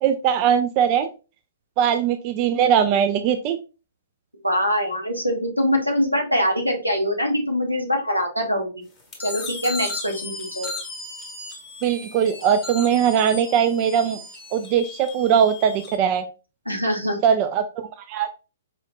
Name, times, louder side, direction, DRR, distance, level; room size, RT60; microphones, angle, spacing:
voice 1, 0.0-1.1 1.8-3.6 11.8-14.2 14.5-16.2 17.2-18.3, right 8 dB, 35° right, 10 dB, 0.3 m, -20 dB
voice 2, 4.4-8.8 9.2-10.7 16.7-17.2, equal, 90° right, 2 dB, 1.1 m, -23 dB
sound 1, 9.1-15.9, left 3 dB, 15° left, 1.4 m, -36 dB
4.8 x 2.8 x 2.3 m, 0.32 s
figure-of-eight pair, 115°, 0 cm